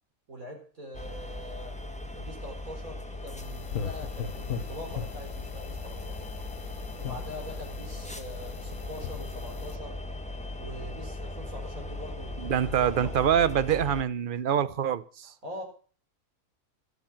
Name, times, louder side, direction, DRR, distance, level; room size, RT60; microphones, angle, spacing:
voice 1, 0.3-1.8 2.1-6.3 7.0-10.0 10.6-13.3 15.2-15.6, equal, 65° right, 4.7 m, -43 dB
sound 1, 0.9-14.0, left 2 dB, 5° left, 1.0 m, -39 dB
sound 2, 3.4-9.8, left 8 dB, 80° left, 1.4 m, -39 dB
voice 2, 12.4-15.3, right 9 dB, 45° right, 0.7 m, -25 dB
12.5 x 11.5 x 5.8 m
omnidirectional pair, 1.5 m